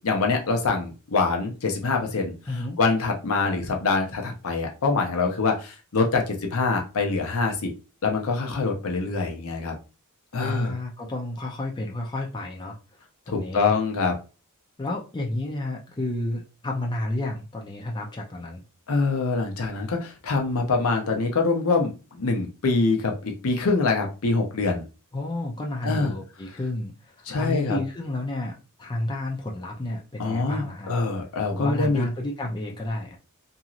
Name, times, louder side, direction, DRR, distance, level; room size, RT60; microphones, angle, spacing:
voice 1, 0.0-2.3 2.8-7.7 8.0-9.7 10.3-10.8 13.3-14.2 18.9-24.8 25.8-26.1 27.3-27.8 30.2-32.0, left 3 dB, 65° left, 3 dB, 0.6 m, -24 dB
voice 2, 2.5-2.8 3.4-3.6 10.4-12.8 13.3-13.7 14.8-18.6 25.1-30.9 31.5-33.2, left 1 dB, 20° left, -1 dB, 0.5 m, -31 dB
2.9 x 2.7 x 2.4 m, 0.32 s
head